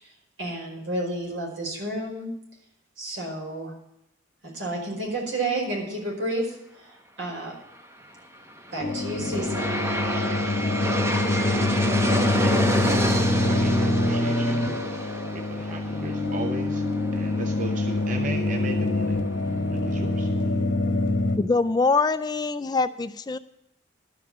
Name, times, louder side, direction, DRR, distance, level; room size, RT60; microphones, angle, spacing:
voice 1, 0.4-2.3 3.0-3.7 4.5-7.5 8.7-9.6, right 1 dB, 75° right, -1 dB, 4.9 m, -31 dB
Aircraft, 8.5-19.5, equal, 15° right, 0.9 m, -30 dB
sound 1, 8.8-21.4, left 2 dB, 65° left, 1.3 m, -25 dB
voice 2, 12.4-14.6 15.0-16.8 17.1-19.2 19.7-20.3, right 2 dB, 40° right, 5 dB, 0.7 m, -36 dB
voice 3, 21.4-23.4, left 4 dB, 20° left, 13 dB, 0.3 m, -23 dB
12.5 x 5.7 x 8.5 m, 0.82 s
head